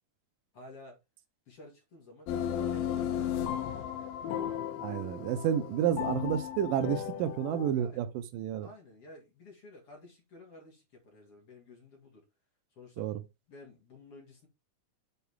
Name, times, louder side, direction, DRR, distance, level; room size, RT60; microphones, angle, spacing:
voice 1, 0.5-1.0 1.5-4.2 7.8-8.1 8.6-12.3 12.7-13.1 13.5-14.5, left 2 dB, 45° left, 3.3 m, -53 dB
sound 1, 2.3-7.7, left 10 dB, 80° left, 2.4 m, -35 dB
voice 2, 4.8-8.7 13.0-13.2, right 9 dB, 80° right, 2.4 m, -30 dB
8.5 x 4.6 x 3.6 m
omnidirectional pair, 3.8 m